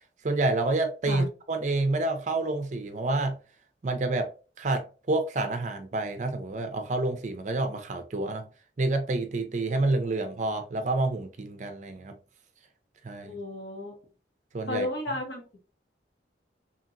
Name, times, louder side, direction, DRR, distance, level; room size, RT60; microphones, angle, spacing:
voice 1, 0.2-3.4 3.8-4.3 4.6-8.5 8.8-12.2 13.0-13.4 14.5-14.9, right 2 dB, 45° right, 0.5 m, -28 dB
voice 2, 13.2-14.0 14.7-15.6, left 2 dB, 65° left, 1.1 m, -33 dB
2.8 x 2.8 x 2.5 m
head